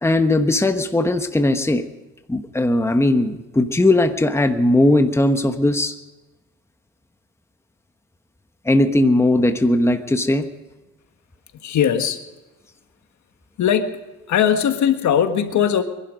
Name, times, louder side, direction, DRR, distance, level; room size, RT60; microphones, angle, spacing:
voice 1, 0.0-1.9 2.3-5.9 8.6-10.4, left 1 dB, 10° left, 7 dB, 1.2 m, -18 dB
voice 2, 11.5-12.2 13.6-14.0 14.3-15.8, left 8 dB, 70° left, 8 dB, 1.6 m, -19 dB
24.0 x 11.5 x 5.1 m, 1.1 s
cardioid pair, 90°, 30 cm